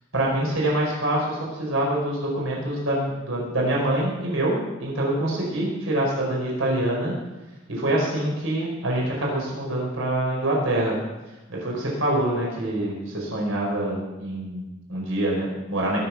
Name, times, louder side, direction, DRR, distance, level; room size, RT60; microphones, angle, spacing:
voice 1, 0.1-7.1 7.7-11.0 11.5-16.0, right 1 dB, 80° right, -3 dB, 5.0 m, -25 dB
22.0 x 7.5 x 6.0 m, 1.1 s
head